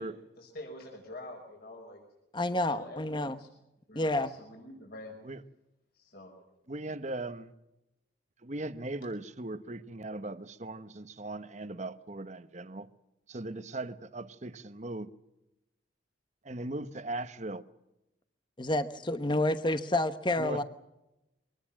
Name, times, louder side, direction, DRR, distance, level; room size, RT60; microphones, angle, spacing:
voice 1, 0.4-2.0 2.5-3.5 3.9-5.2 5.9-6.3, left 1 dB, 55° left, 5.6 m, -46 dB
voice 2, 2.3-3.4 3.9-4.4 18.6-20.6, left 1 dB, 25° left, 1.0 m, -29 dB
voice 3, 6.7-7.5 8.4-12.9 13.3-15.1 16.4-17.7 20.4-20.6, right 2 dB, 40° right, 1.1 m, -38 dB
24.5 x 19.0 x 7.5 m
head